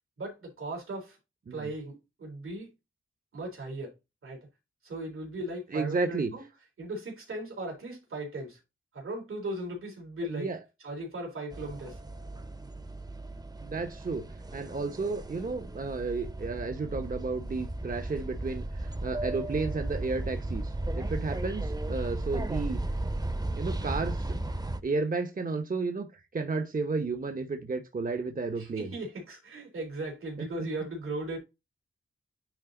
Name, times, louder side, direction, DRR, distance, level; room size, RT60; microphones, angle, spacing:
voice 1, 0.2-1.2 1.5-2.7 3.3-3.9 4.2-4.5 4.8-6.4 6.8-8.6 8.9-10.5 10.8-12.0 28.6-31.4, right 1 dB, 85° right, 3.5 m, -37 dB
voice 2, 5.7-6.3 10.3-10.6 13.6-14.3 14.5-22.8 23.5-24.4 24.8-28.9 30.4-30.7, right 3 dB, 40° right, 1.0 m, -32 dB
sound 1, 11.5-24.8, right 2 dB, 20° right, 0.9 m, -35 dB
9.6 x 4.0 x 3.9 m
wide cardioid pair, 100°, 21 cm